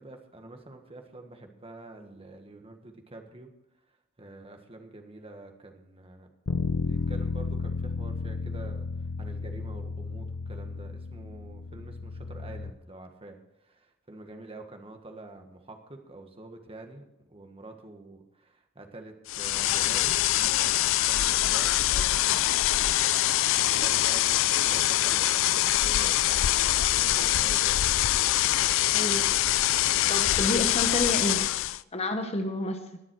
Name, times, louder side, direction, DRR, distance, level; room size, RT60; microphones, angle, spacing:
voice 1, 0.0-3.5 4.2-6.3 6.8-22.5 23.4-27.8 30.4-30.6, right 2 dB, 25° right, 4 dB, 1.6 m, -47 dB
Bass guitar, 6.5-12.7, left 3 dB, 85° left, 0.7 m, -33 dB
sound 1, 19.3-31.8, left 14 dB, 65° left, 0.4 m, -24 dB
voice 2, 28.9-29.3 30.1-31.4 31.9-32.8, left 1 dB, 30° left, 7 dB, 1.1 m, -29 dB
20.5 x 7.4 x 4.7 m, 0.88 s
head